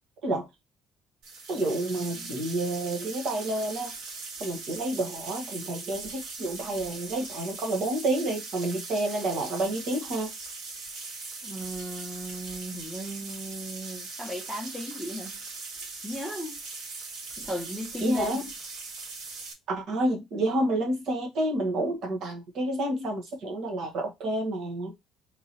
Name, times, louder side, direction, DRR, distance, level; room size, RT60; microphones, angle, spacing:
sound 1, 1.2-19.5, right 3 dB, 75° right, 2.0 m, -40 dB
voice 1, 1.5-3.9 4.4-10.3 18.0-18.4 19.7-24.9, right 1 dB, 50° right, 1.4 m, -29 dB
voice 2, 11.4-15.4 16.0-16.6 17.4-18.5, equal, ahead, 1.1 m, -36 dB
3.7 x 3.0 x 4.2 m
cardioid pair, 170°, 0 cm